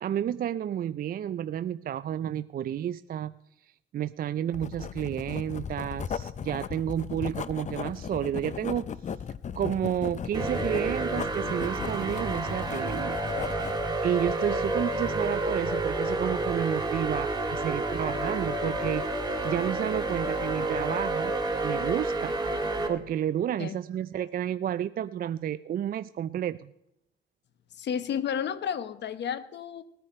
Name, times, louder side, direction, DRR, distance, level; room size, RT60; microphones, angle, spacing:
voice 1, 0.0-3.3 3.6-8.9 9.5-13.2 13.5-21.3 21.6-22.4 22.9-26.7, right 10 dB, 50° right, 14 dB, 0.4 m, -31 dB
Writing, 4.5-13.9, left 7 dB, 35° left, 0.5 m, -37 dB
sound 1, 10.3-22.9, right 2 dB, 20° right, 2.2 m, -30 dB
voice 2, 27.7-29.8, left 8 dB, 60° left, 14 dB, 1.0 m, -32 dB
19.0 x 10.0 x 4.3 m, 0.83 s
cardioid pair, 90°, 20 cm